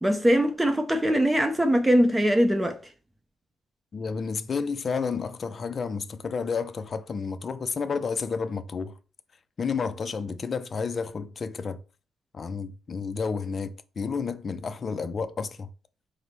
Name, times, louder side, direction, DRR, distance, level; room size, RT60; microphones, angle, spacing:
voice 1, 0.0-2.8, equal, 10° right, 0.6 m, -22 dB
voice 2, 3.9-8.9 9.6-11.8 12.3-15.7, left 5 dB, 40° left, 0.4 m, -31 dB
4.8 x 2.1 x 4.2 m
cardioid pair, 90°, 0 cm